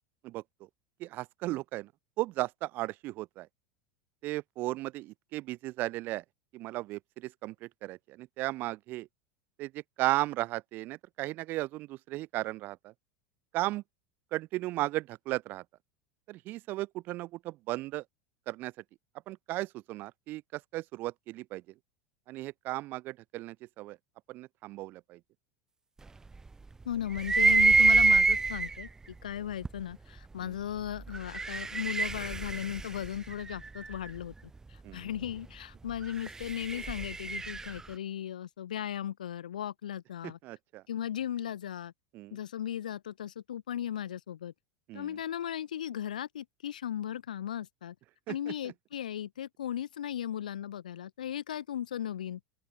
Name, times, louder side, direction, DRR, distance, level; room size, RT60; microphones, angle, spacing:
voice 1, 0.2-0.7 1.0-1.9 2.2-3.5 4.2-6.2 6.5-9.1 9.6-12.9 13.5-13.8 14.3-15.6 16.3-18.0 18.5-18.7 19.3-21.7 22.3-24.0 24.3-25.2 30.4-30.6 34.8-35.1 40.2-40.8 42.1-42.4 44.9-45.2 48.3-48.7, right 18 dB, 50° right, 7.5 m, -36 dB
voice 2, 26.8-28.9 29.2-34.3 34.9-40.4 40.9-41.9 42.3-44.5 44.9-47.9 48.3-52.4, left 10 dB, 90° left, 4.0 m, -36 dB
sound 1, 27.2-28.8 29.7-29.8 31.1-34.0 36.0-37.8, right 3 dB, 15° right, 0.8 m, -26 dB
open air
hypercardioid pair, 100°, 4 cm